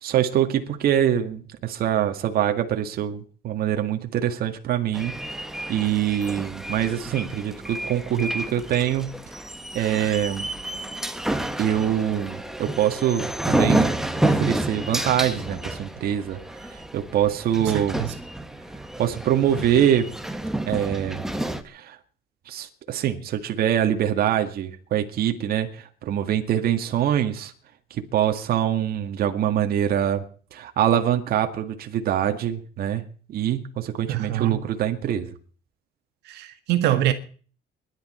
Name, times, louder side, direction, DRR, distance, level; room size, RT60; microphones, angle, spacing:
voice 1, 0.0-5.2 5.7-9.1 9.7-10.5 11.6-14.0 14.2-18.0 19.0-20.1 20.7-21.2 21.6-22.0 22.5-27.5 27.9-35.3, right 10 dB, 65° right, 2.0 m, -24 dB
sound 1, 4.9-21.6, right 1 dB, 5° right, 1.7 m, -29 dB
voice 2, 17.6-18.1 34.1-34.6 36.3-37.1, right 13 dB, 80° right, 1.9 m, -24 dB
24.0 x 11.5 x 4.4 m
cardioid pair, 110°, 17 cm